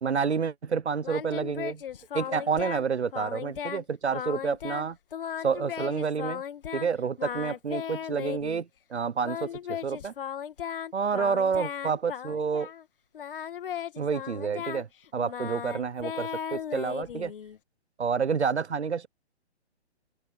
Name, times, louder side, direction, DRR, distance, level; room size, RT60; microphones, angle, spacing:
voice 1, 0.0-1.8 2.1-5.0 5.4-6.4 6.7-10.1 10.9-12.7 14.0-14.9 15.1-17.3 18.0-19.1, right 6 dB, 75° right, 1.1 m, -29 dB
Singing, 1.0-2.9 3.1-3.8 4.1-6.9 7.2-8.6 9.2-12.8 13.1-17.6, left 9 dB, 55° left, 2.3 m, -36 dB
open air
figure-of-eight pair, 130°, 33 cm